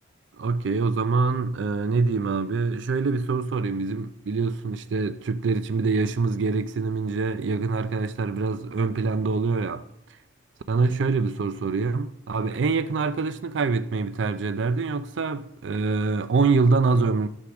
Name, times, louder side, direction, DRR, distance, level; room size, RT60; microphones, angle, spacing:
voice 1, 0.4-9.8 10.7-17.3, right 4 dB, 65° right, 0.4 m, -25 dB
11.5 x 6.5 x 5.9 m
head